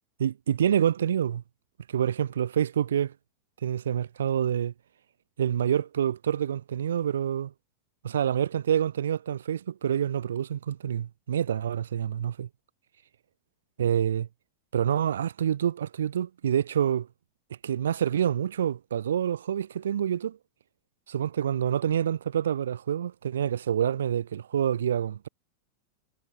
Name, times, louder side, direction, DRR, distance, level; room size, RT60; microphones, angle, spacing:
voice 1, 0.2-1.4 1.9-3.1 3.6-4.7 5.4-7.5 8.0-12.5 13.8-14.3 14.7-17.1 17.6-20.4 21.1-25.3, right 9 dB, 65° right, 1.6 m, -27 dB
figure-of-eight pair, 90°, 0 cm